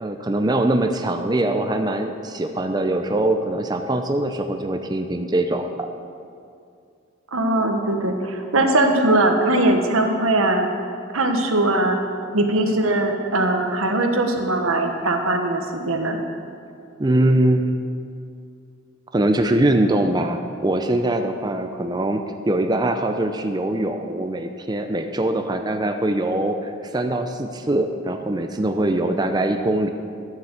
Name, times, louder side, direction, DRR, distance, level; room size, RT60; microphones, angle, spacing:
voice 1, 0.0-5.7 17.0-17.7 19.1-29.9, right 1 dB, 20° right, 6 dB, 0.5 m, -22 dB
voice 2, 7.3-10.7 11.1-12.0 12.3-16.2, right 2 dB, 90° right, 4 dB, 1.3 m, -20 dB
11.5 x 7.7 x 7.2 m, 2.4 s
head